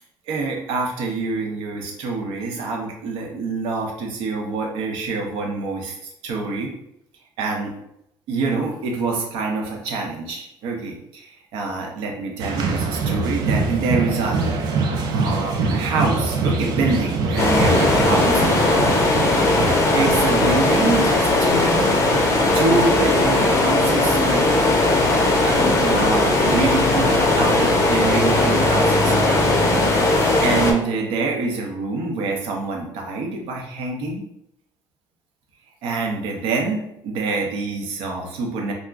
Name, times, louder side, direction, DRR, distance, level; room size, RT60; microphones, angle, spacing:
voice 1, 0.3-6.7 7.4-7.7 8.3-14.5 15.1-18.8 19.9-21.8 22.5-24.5 25.4-29.1 29.9-34.2 35.8-38.7, right 3 dB, 80° right, 1 dB, 0.7 m, -26 dB
sound 1, 12.4-20.8, right 3 dB, 50° right, 0.3 m, -24 dB
sound 2, 17.4-30.7, left 2 dB, 30° left, 0.5 m, -18 dB
2.4 x 2.0 x 3.4 m, 0.80 s
cardioid pair, 175°, 9 cm